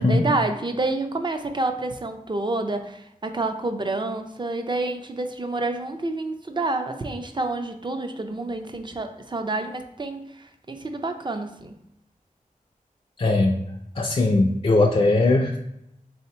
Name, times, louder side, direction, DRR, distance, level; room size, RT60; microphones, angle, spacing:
voice 1, 0.0-11.7, right 2 dB, 35° right, 6 dB, 0.4 m, -28 dB
voice 2, 13.2-13.6 14.0-15.6, left 2 dB, 40° left, 1 dB, 0.4 m, -19 dB
3.6 x 2.8 x 4.1 m, 0.81 s
wide cardioid pair, 70°, 14 cm